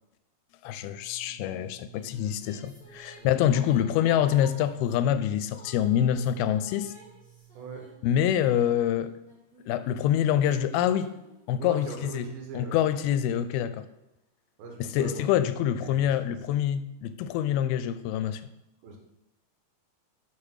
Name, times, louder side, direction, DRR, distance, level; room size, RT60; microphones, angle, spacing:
voice 1, 0.6-6.9 8.0-9.1 9.7-11.1 11.5-12.3 12.5-13.9 14.8-18.4, left 10 dB, 85° left, 12 dB, 2.4 m, -26 dB
sound 1, 0.7-8.2, right 15 dB, 35° right, 2.4 m, -55 dB
sound 2, 1.6-8.6 9.2-13.0, equal, 5° left, 0.6 m, -52 dB
voice 2, 3.2-4.1 7.5-7.8 11.6-12.8 14.6-15.3 15.8-16.6 18.8-19.0, right 4 dB, 75° right, 1 dB, 3.2 m, -42 dB
6.7 x 5.6 x 6.3 m, 0.91 s
omnidirectional pair, 4.4 m